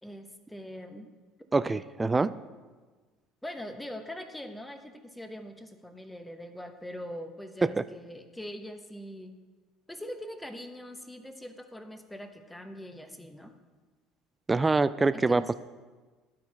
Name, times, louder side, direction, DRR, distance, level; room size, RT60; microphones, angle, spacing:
voice 1, 0.0-1.1 3.4-9.4 9.9-13.5 15.1-15.5, equal, 5° left, 7 dB, 0.9 m, -42 dB
voice 2, 1.5-2.3 7.6-7.8 14.5-15.4, right 3 dB, 20° right, 14 dB, 0.3 m, -25 dB
12.5 x 4.3 x 4.2 m, 1.4 s
hypercardioid pair, 65°, 0 cm